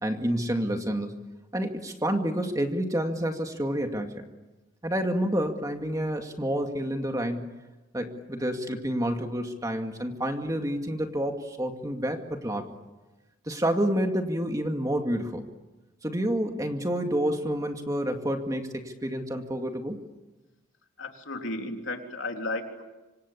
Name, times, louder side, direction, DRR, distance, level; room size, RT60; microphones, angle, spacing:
voice 1, 0.0-1.1 1.5-4.3 4.8-7.5 7.9-12.7 13.5-15.5 16.0-20.0, equal, 15° right, 4 dB, 2.2 m, -29 dB
voice 2, 21.0-22.8, left 2 dB, 70° left, 3 dB, 3.6 m, -34 dB
26.5 x 25.5 x 8.5 m, 1.1 s
head